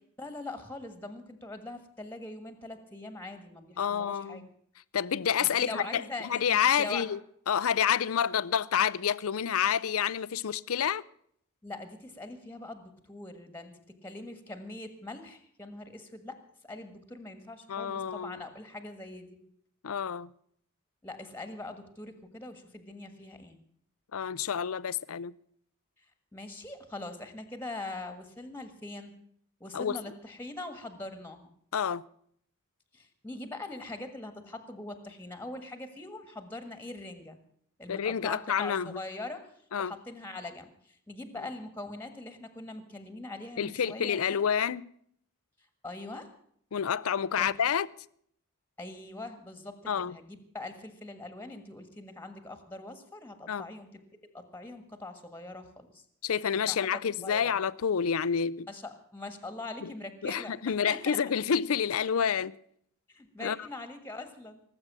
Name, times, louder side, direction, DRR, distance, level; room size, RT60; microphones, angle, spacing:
voice 1, 0.2-4.5 5.6-7.0 11.6-16.4 16.6-19.4 21.0-23.6 26.3-29.1 29.6-31.5 32.9-37.4 37.8-39.5 39.8-44.2 45.8-46.3 47.4-47.5 48.8-49.8 50.0-54.0 54.3-56.0 56.6-56.9 57.2-57.6 58.7-61.2 63.1-64.6, left 2 dB, 10° left, 1.6 m, -42 dB
voice 2, 3.8-4.5 4.9-7.2 7.5-11.0 17.7-18.4 19.8-20.3 24.1-25.3 29.7-30.0 31.7-32.0 37.9-39.0 39.7-39.9 43.6-44.9 46.7-47.9 49.9-50.1 53.5-53.6 56.2-58.7 59.8-59.9 60.2-62.5 63.4-63.6, left 8 dB, 70° left, 0.5 m, -28 dB
18.5 x 7.9 x 7.4 m
head